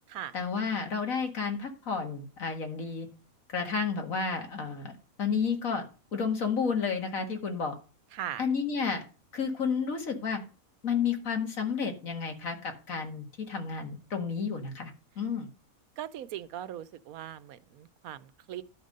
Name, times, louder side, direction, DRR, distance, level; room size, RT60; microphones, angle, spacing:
voice 1, 0.3-3.1 3.5-4.9 5.2-5.9 6.1-7.8 8.4-9.0 9.3-10.4 10.8-15.5, left 5 dB, 70° left, 2.2 m, -31 dB
voice 2, 8.1-8.4 16.0-18.6, right 11 dB, 85° right, 1.1 m, -39 dB
11.5 x 5.2 x 6.5 m
omnidirectional pair, 1.5 m